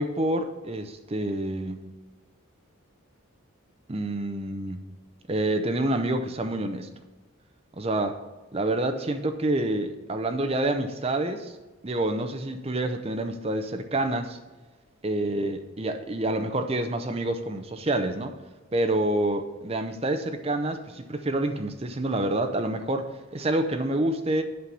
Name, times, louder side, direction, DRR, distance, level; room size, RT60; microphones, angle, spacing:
voice 1, 0.0-1.8 3.9-4.9 5.3-6.9 7.8-8.2 8.5-11.5 11.8-14.4 15.0-18.3 18.7-24.4, right 1 dB, 30° right, 7 dB, 0.6 m, -27 dB
8.5 x 5.6 x 6.0 m, 1.2 s
head